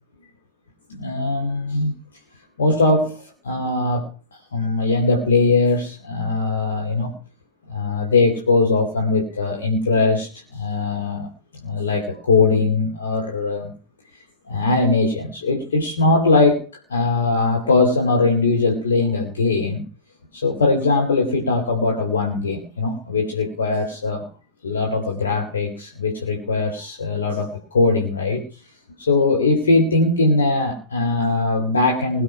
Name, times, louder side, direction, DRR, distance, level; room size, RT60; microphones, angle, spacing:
voice 1, 1.0-1.9 2.6-4.1 4.5-7.1 7.7-11.3 11.6-13.7 14.5-19.8 20.3-24.2 24.6-28.4 29.0-32.2, left 3 dB, 75° left, 2 dB, 3.3 m, -20 dB
20.5 x 7.6 x 6.0 m, 0.35 s
figure-of-eight pair, 80°, 0 cm